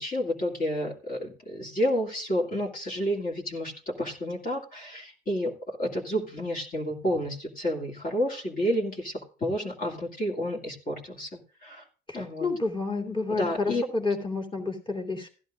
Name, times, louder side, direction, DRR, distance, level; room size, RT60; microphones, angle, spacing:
voice 1, 0.0-11.9 12.1-12.5 13.3-13.8, equal, 45° left, -1 dB, 2.2 m, -30 dB
voice 2, 12.1-15.3, left 3 dB, 25° left, 1 dB, 2.6 m, -30 dB
16.0 x 11.0 x 2.5 m, 0.36 s
cardioid pair, 90°, 20 cm